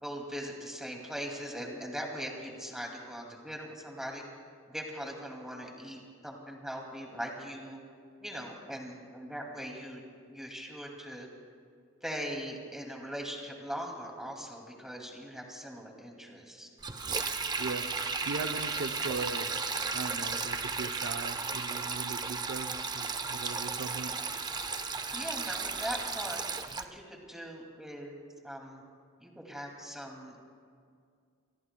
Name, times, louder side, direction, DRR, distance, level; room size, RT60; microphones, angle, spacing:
voice 1, 0.0-4.2 4.7-7.8 8.2-10.0 10.3-11.3 12.0-16.7 25.1-26.4 26.8-28.2 28.4-28.8 29.2-30.4, equal, ahead, 0 dB, 2.4 m, -40 dB
Sink (filling or washing), 16.8-26.9, right 4 dB, 20° right, 0.6 m, -34 dB
voice 2, 17.6-17.9 18.2-19.5 19.9-24.2, right 4 dB, 75° right, 7 dB, 0.6 m, -39 dB
27.0 x 22.0 x 2.2 m, 2.2 s
head